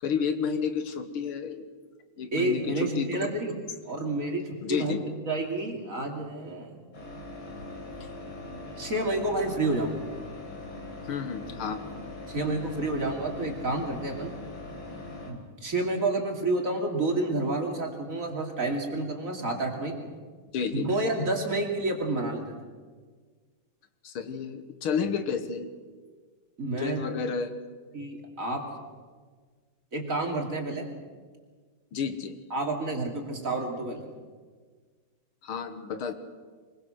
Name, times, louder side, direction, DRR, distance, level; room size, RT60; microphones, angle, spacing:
voice 1, 0.0-1.7 2.2-3.1 4.6-5.0 8.0-8.1 11.1-11.8 20.5-20.9 24.0-25.7 26.8-27.5 31.9-32.4 35.4-36.1, left 6 dB, 80° left, 9 dB, 2.1 m, -31 dB
voice 2, 2.3-3.6 3.9-5.0 5.3-6.8 8.8-10.0 12.3-14.3 15.3-20.0 20.7-22.6 26.6-27.2 27.9-28.7 29.9-30.9 32.5-34.0, right 2 dB, 40° right, 1 dB, 3.1 m, -29 dB
sound 1, 6.9-15.3, left 2 dB, 60° left, 4.5 m, -41 dB
23.5 x 21.5 x 6.4 m, 1.5 s
omnidirectional pair, 2.3 m